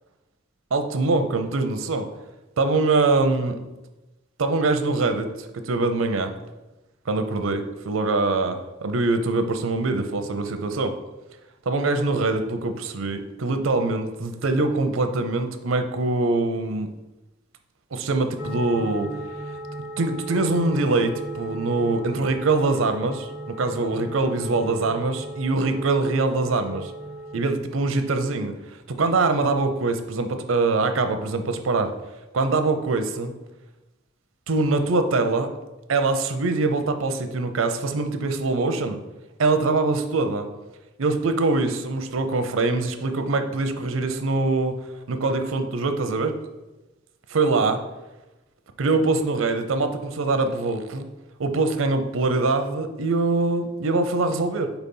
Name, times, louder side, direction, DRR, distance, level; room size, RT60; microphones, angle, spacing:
voice 1, 0.7-2.1 2.6-3.6 4.4-6.3 7.1-11.0 11.7-16.9 17.9-19.1 20.0-23.3 23.6-26.9 27.3-31.9 32.3-33.3 34.5-35.5 35.9-39.0 39.4-40.5 41.0-44.8 45.1-46.4 47.3-47.8 48.8-51.1 51.4-54.7, right 3 dB, 90° right, 8 dB, 0.6 m, -23 dB
sound 1, 18.4-27.4, right 1 dB, 15° right, 0.4 m, -36 dB
4.4 x 4.0 x 5.4 m, 1.1 s
head